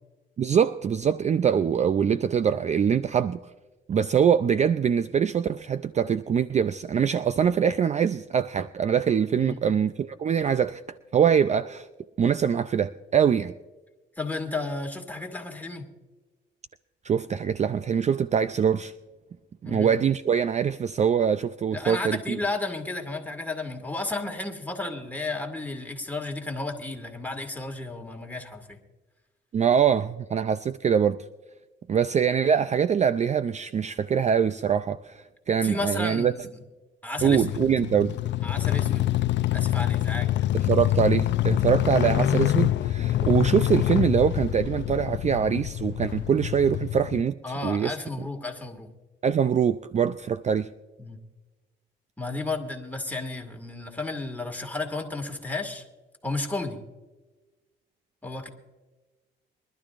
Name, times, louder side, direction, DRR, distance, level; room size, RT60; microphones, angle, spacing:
voice 1, 0.4-3.4 3.9-10.8 11.1-11.9 12.2-13.5 17.0-18.9 19.6-22.4 29.5-31.2 31.9-36.3 37.2-38.1 40.5-48.0 49.2-50.7, right 7 dB, 35° right, 0.4 m, -23 dB
voice 2, 14.2-15.9 19.6-19.9 21.7-28.8 35.6-36.4 37.0-37.5 38.4-39.1 39.5-40.3 47.4-48.9 51.0-51.2 52.2-55.8 56.2-56.8 58.2-58.5, left 2 dB, 10° left, 2.2 m, -33 dB
sound 1, 37.2-47.2, left 13 dB, 65° left, 0.5 m, -26 dB
24.0 x 12.0 x 2.5 m
cardioid pair, 90°, 20 cm